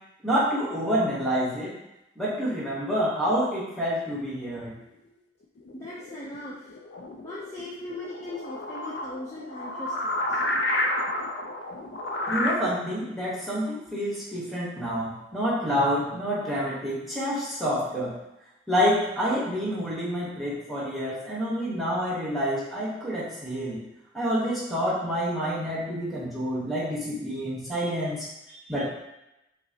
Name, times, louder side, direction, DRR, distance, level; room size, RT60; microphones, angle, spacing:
voice 1, 0.2-1.7 2.2-4.7 12.3-18.2 18.7-23.8 24.1-28.9, equal, ahead, -8 dB, 1.0 m, -28 dB
sound 1, 5.6-12.6, left 1 dB, 65° left, 0.4 m, -31 dB
voice 2, 5.7-6.7 7.2-10.4, left 1 dB, 15° left, -9 dB, 0.5 m, -39 dB
5.4 x 2.0 x 2.7 m, 0.90 s
head